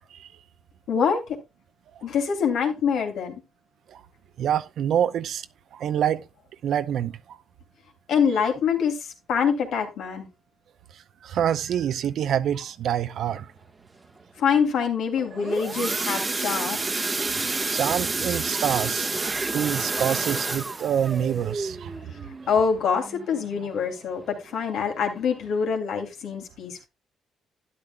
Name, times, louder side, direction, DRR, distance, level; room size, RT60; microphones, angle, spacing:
voice 1, 0.9-1.4 2.0-3.4 8.1-10.3 14.4-16.8 22.5-26.9, left 6 dB, 75° left, 3.1 m, -25 dB
voice 2, 4.4-5.4 5.7-6.2 6.6-7.1 11.2-13.5 17.7-19.1 19.5-21.9, right 9 dB, 70° right, 0.7 m, -26 dB
sound 1, 15.2-23.8 24.3-24.5 24.8-24.9 25.4-25.5, right 3 dB, 25° right, 1.1 m, -29 dB
12.5 x 10.5 x 2.2 m
cardioid pair, 90°, 0 cm